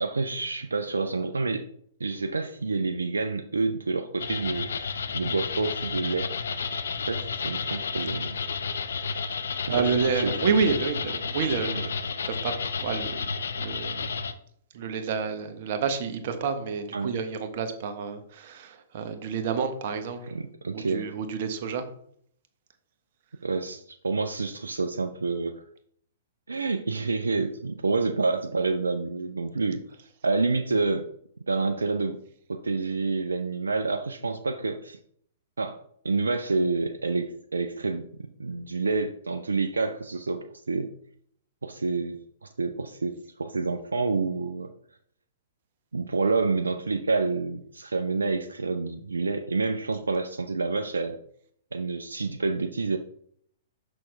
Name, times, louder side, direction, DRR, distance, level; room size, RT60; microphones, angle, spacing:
voice 1, 0.0-1.7 2.0-6.3 7.0-8.4 9.7-10.5 11.7-11.8 16.9-17.1 20.3-21.1 23.4-25.6 26.5-29.8 30.2-31.1 31.5-32.2 32.5-35.0 35.6-35.8 36.0-38.1 38.4-40.9 41.6-44.7 45.9-51.2 51.7-53.0, right 3 dB, 85° right, 7 dB, 0.4 m, -28 dB
sound 1, 4.2-14.3, left 5 dB, 70° left, 0.5 m, -31 dB
voice 2, 9.7-11.9 12.2-14.1 14.7-20.3 20.7-21.9, right 5 dB, 55° right, 8 dB, 1.0 m, -29 dB
6.1 x 5.8 x 3.1 m, 0.65 s
figure-of-eight pair, 115°, 0 cm